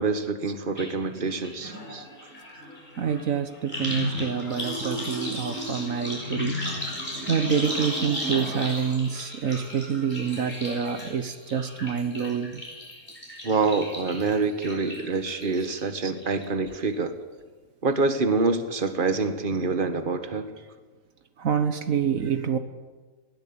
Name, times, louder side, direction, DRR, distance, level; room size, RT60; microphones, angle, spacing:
voice 1, 0.0-1.7 13.4-17.1 17.8-20.5, right 4 dB, 40° right, 8 dB, 1.7 m, -26 dB
sound 1, 0.8-0.9 1.2-15.8 16.2-16.7 16.9-17.0, left 1 dB, 35° left, 7.3 m, -35 dB
voice 2, 3.0-6.6 7.3-12.6 16.0-16.1 16.7-16.8 21.4-22.6, right 7 dB, 75° right, 9 dB, 1.6 m, -27 dB
21.5 x 17.0 x 8.9 m, 1.3 s
omnidirectional pair, 1.4 m